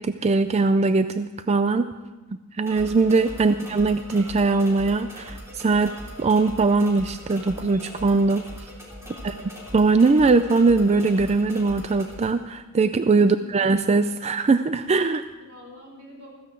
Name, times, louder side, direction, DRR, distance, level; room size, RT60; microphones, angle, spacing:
voice 1, 0.0-1.9 2.6-8.4 9.2-9.3 9.7-15.2, right 3 dB, 30° right, 10 dB, 0.4 m, -21 dB
sound 1, 2.7-12.3, equal, 15° right, 3.3 m, -40 dB
voice 2, 9.0-9.5 13.2-13.5 15.4-16.3, left 2 dB, 80° right, -1 dB, 5.3 m, -46 dB
15.0 x 14.5 x 4.5 m, 1.2 s
head